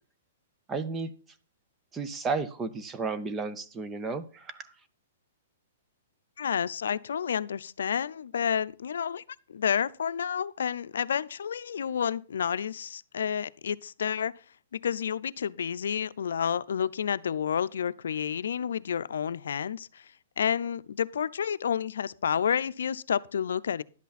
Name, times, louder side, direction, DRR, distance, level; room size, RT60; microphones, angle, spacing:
voice 1, 0.7-1.1 1.9-4.7, right 4 dB, 15° right, 0.7 m, -33 dB
voice 2, 6.4-9.2 9.5-14.3 14.7-20.0 20.4-23.8, left 8 dB, 85° left, 0.5 m, -30 dB
11.5 x 8.3 x 4.1 m
hypercardioid pair, 155°, 0 cm